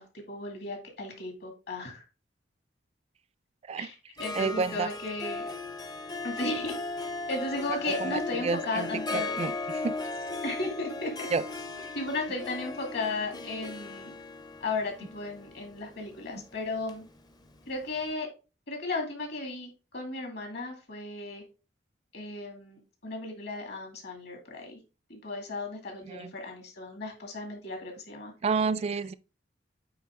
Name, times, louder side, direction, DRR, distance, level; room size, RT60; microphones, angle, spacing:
voice 1, 0.0-2.0 3.7-5.5 6.2-6.8 7.3-9.4 10.4-11.3 11.9-14.1 14.6-17.0 17.7-18.3 18.7-21.4 22.1-24.8 25.1-28.3, left 2 dB, 60° left, 2.3 m, -35 dB
Harp, 4.2-17.7, left 3 dB, 20° left, 0.6 m, -37 dB
voice 2, 4.3-4.9 8.0-10.0 11.3-11.4 26.1-26.3 28.4-29.1, right 4 dB, 35° right, 0.3 m, -30 dB
8.7 x 3.6 x 3.6 m
head